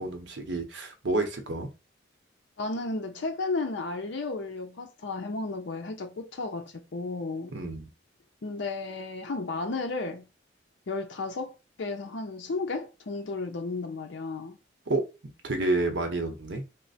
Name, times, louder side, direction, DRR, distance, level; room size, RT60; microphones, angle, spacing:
voice 1, 0.0-1.7 7.5-7.9 14.9-15.0 15.4-16.6, right 2 dB, 65° right, 0.8 m, -29 dB
voice 2, 2.6-7.5 8.4-10.3 10.9-14.6, left 3 dB, 65° left, 0.5 m, -33 dB
3.2 x 2.1 x 4.0 m
head